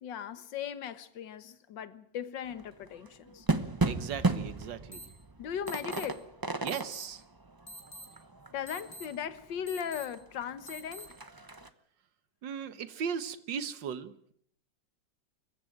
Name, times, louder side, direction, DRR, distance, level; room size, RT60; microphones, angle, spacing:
voice 1, 0.0-3.5 5.4-6.2 8.5-11.1, left 8 dB, 85° left, 1.8 m, -38 dB
sound 1, 2.5-9.4 9.8-9.9 10.1-11.7, right 3 dB, 20° right, 0.7 m, -34 dB
voice 2, 3.8-5.0 6.6-7.2 12.4-14.3, right 7 dB, 85° right, 1.9 m, -37 dB
sound 2, 4.9-5.0 5.7-6.0 6.7-7.0 7.7-8.0 8.7-9.0 9.7-10.0 10.7-11.0, equal, 30° left, 4.5 m, -45 dB
25.5 x 14.5 x 9.1 m
omnidirectional pair, 1.9 m